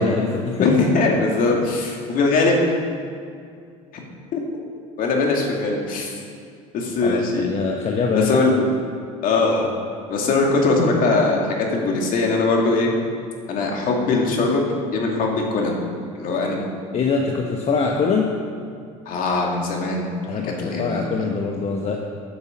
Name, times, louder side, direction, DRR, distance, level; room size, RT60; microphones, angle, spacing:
voice 1, 0.0-0.7 7.0-8.4 16.9-18.4 20.3-22.0, left 5 dB, 40° left, 1 dB, 1.2 m, -23 dB
voice 2, 0.6-2.6 4.3-4.4 5.0-6.1 6.7-7.6 8.1-8.6 9.2-9.7 10.1-12.9 13.5-14.6 14.9-15.8 16.1-16.6 19.1-20.1 20.4-21.3, left 3 dB, 55° left, 0 dB, 2.4 m, -21 dB
9.8 x 6.9 x 7.1 m, 2.3 s
hypercardioid pair, 80°, 17 cm